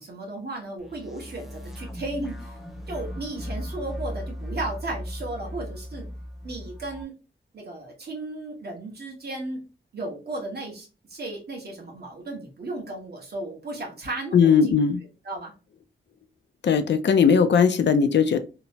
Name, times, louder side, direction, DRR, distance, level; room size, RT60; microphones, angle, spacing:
voice 1, 0.0-2.5 2.9-6.1 6.4-7.1 7.5-9.6 9.9-14.7 15.2-15.5, right 2 dB, 50° right, -1 dB, 1.1 m, -35 dB
sound 1, 0.8-7.0, equal, ahead, 0.5 m, -37 dB
voice 2, 14.3-15.0 16.6-18.4, left 6 dB, 60° left, 10 dB, 0.4 m, -19 dB
2.9 x 2.1 x 2.7 m, 0.32 s
wide cardioid pair, 155°, 20 cm